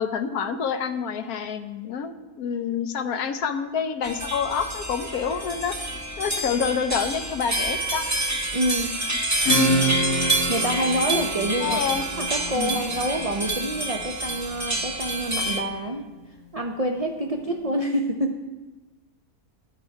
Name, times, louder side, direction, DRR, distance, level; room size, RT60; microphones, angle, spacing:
voice 1, 0.0-5.8 6.2-8.0 11.6-12.0 12.6-12.8, left 6 dB, 80° left, 8 dB, 1.2 m, -27 dB
sound 1, 4.0-15.6, right 2 dB, 15° right, 0.7 m, -28 dB
voice 2, 8.5-9.0 10.5-11.9 12.2-16.1 16.5-18.4, right 1 dB, 60° right, 3 dB, 0.3 m, -27 dB
Acoustic guitar / Strum, 9.5-14.8, equal, 60° left, 1.8 m, -28 dB
12.5 x 8.1 x 4.6 m, 1.2 s
omnidirectional pair, 1.6 m